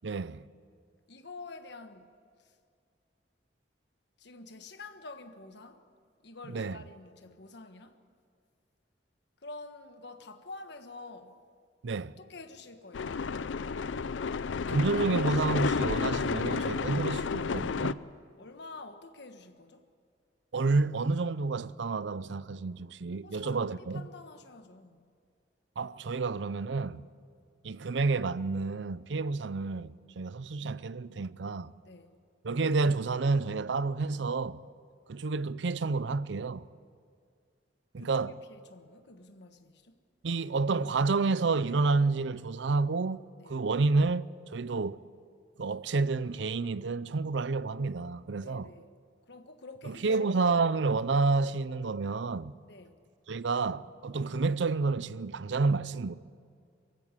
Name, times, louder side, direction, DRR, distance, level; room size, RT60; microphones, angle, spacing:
voice 1, 0.0-0.4 6.5-6.8 11.8-12.1 14.7-18.0 20.5-24.1 25.8-27.1 27.6-31.7 32.4-34.6 35.1-36.6 37.9-38.3 40.2-45.0 45.6-48.7 49.8-52.5 53.3-56.2, right 3 dB, 75° right, 0.6 m, -29 dB
voice 2, 1.1-2.1 2.4-2.6 4.2-5.9 6.2-8.0 9.4-11.4 12.2-13.2 18.4-19.9 23.2-25.1 31.8-32.2 38.0-40.0 43.4-43.6 48.4-49.0 49.3-50.6 52.7-53.0, left 3 dB, 65° left, 1.4 m, -48 dB
sound 1, 12.9-17.9, left 5 dB, 90° left, 0.5 m, -31 dB
22.5 x 15.5 x 9.6 m
head